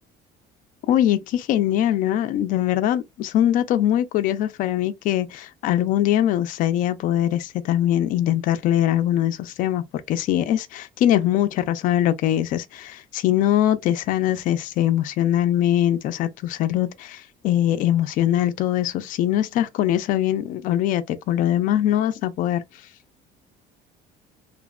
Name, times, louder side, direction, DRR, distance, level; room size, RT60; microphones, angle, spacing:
voice 1, 0.9-22.6, left 12 dB, 55° left, 0.4 m, -22 dB
3.0 x 2.1 x 2.3 m
cardioid pair, 165°, 17 cm